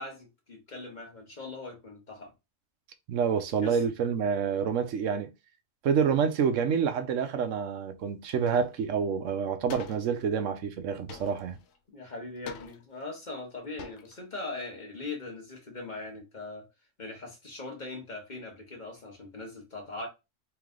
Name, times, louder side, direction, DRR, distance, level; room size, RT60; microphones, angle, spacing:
voice 1, 0.0-2.3 3.6-3.8 11.9-16.6 17.0-20.1, left 2 dB, 40° left, 1.3 m, -40 dB
voice 2, 3.1-5.3 5.8-11.6, right 7 dB, 85° right, 1.0 m, -28 dB
sound 1, 8.3-8.8 9.1-9.2 9.7-10.2 11.1-11.8 12.5-13.1 13.5-13.6 13.8-14.2, left 6 dB, 85° left, 1.0 m, -44 dB
3.4 x 3.2 x 3.7 m
omnidirectional pair, 1.3 m